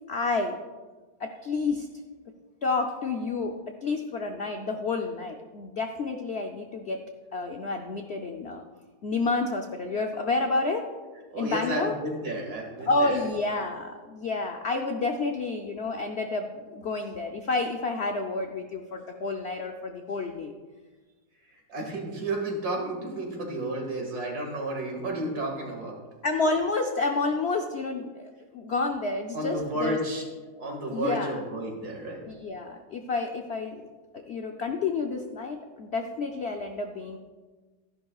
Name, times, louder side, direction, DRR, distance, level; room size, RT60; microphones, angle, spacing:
voice 1, 0.1-0.6 1.2-1.9 2.6-3.5 3.8-7.1 7.3-8.6 9.0-10.8 11.4-11.9 12.9-20.5 26.2-30.0 30.6-31.4 32.3-33.8 34.3-37.2, left 3 dB, 60° left, 3 dB, 0.6 m, -29 dB
voice 2, 11.3-13.2 21.7-26.0 29.3-30.2 30.6-32.2, right 1 dB, 60° right, 0 dB, 2.6 m, -32 dB
14.0 x 11.0 x 2.4 m, 1.3 s
omnidirectional pair, 1.8 m